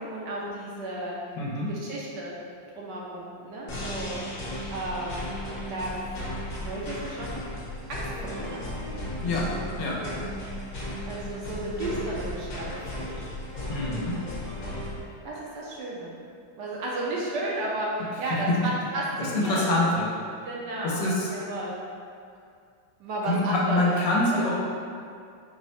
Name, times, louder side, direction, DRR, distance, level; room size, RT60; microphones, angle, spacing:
voice 1, 0.0-1.2 1.7-2.4 2.8-4.5 4.7-5.3 5.7-5.9 6.6-7.4 7.9-8.8 9.2-10.3 11.1-13.3 15.2-16.1 16.6-19.9 20.4-21.8 23.0-23.9, right 1 dB, 75° right, -4 dB, 1.1 m, -33 dB
voice 2, 1.3-1.7 9.2-9.5 9.8-10.0 13.7-14.2 18.5-18.6 19.2-20.1 20.8-21.3 23.2-24.5, left 2 dB, 75° left, -3 dB, 1.3 m, -25 dB
sound 1, 3.7-15.0, left 1 dB, 55° left, 1.1 m, -35 dB
4.7 x 2.1 x 4.1 m, 2.3 s
omnidirectional pair, 2.1 m